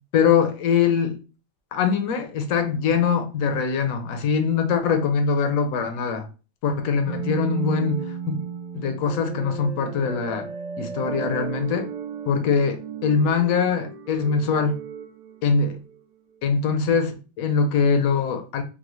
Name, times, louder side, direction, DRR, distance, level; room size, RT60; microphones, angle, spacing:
voice 1, 0.1-1.2 1.7-6.3 6.6-8.4 8.7-10.5 10.8-11.9 12.3-14.8 15.4-15.8 16.4-18.6, left 6 dB, 70° left, 0.8 m, -22 dB
sound 1, 7.1-16.0, right 6 dB, 70° right, 1.1 m, -34 dB
3.8 x 2.0 x 3.0 m
omnidirectional pair, 2.0 m